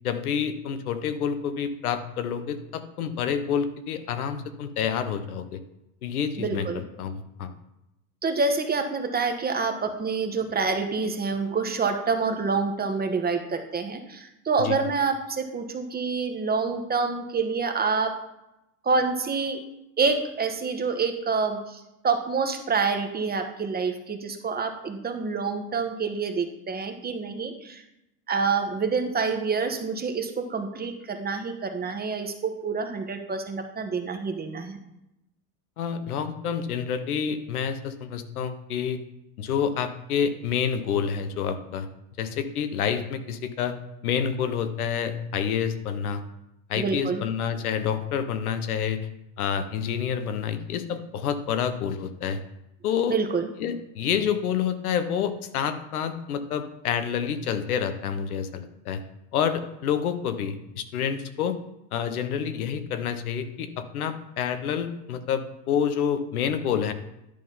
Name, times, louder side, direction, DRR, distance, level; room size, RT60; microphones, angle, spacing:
voice 1, 0.0-5.6 6.0-6.7 7.0-7.5 14.6-14.8 35.8-39.0 39.4-41.9 42.2-43.8 44.0-46.2 46.7-49.1 49.4-52.4 52.8-53.2 53.6-59.0 59.3-61.6 61.9-66.9, left 7 dB, 85° left, 9 dB, 1.0 m, -28 dB
voice 2, 6.4-6.8 8.2-18.1 18.8-19.6 20.0-27.8 28.3-34.8 46.7-47.2 53.1-53.5, right 4 dB, 20° right, 6 dB, 1.2 m, -27 dB
10.5 x 3.8 x 5.5 m, 0.87 s
hypercardioid pair, 90°, 43 cm